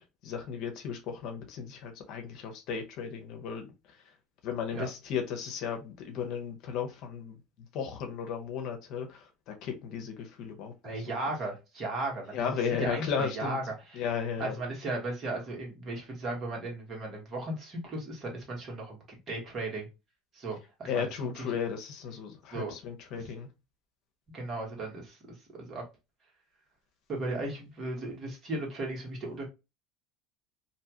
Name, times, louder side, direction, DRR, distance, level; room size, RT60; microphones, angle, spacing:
voice 1, 0.0-4.1 4.4-7.4 7.7-11.0 12.3-13.6 13.9-14.6 20.9-23.5, left 7 dB, 65° left, 0.8 m, -35 dB
voice 2, 10.8-12.5 12.8-13.6 14.4-19.9 20.3-21.3 22.5-22.7 23.2-23.3 24.3-25.8 27.1-29.4, right 2 dB, 40° right, 1.5 m, -36 dB
2.7 x 2.3 x 2.8 m
supercardioid pair, 100°, 0 cm